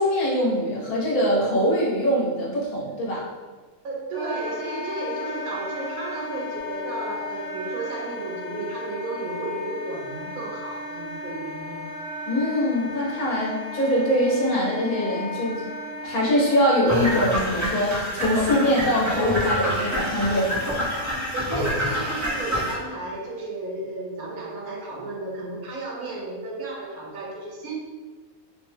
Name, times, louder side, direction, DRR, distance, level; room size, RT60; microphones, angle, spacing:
voice 1, 0.0-3.3 12.3-15.6 16.0-20.8, equal, 85° left, -4 dB, 1.4 m, -23 dB
voice 2, 3.8-11.9 21.3-27.7, right 2 dB, 80° right, -3 dB, 1.2 m, -33 dB
Wind instrument woodwind instrument, 4.1-17.2, left 1 dB, 55° left, 1.3 m, -35 dB
sound 1, 16.9-22.7, equal, 20° right, 0.5 m, -27 dB
3.3 x 2.1 x 3.3 m, 1.4 s
omnidirectional pair, 1.5 m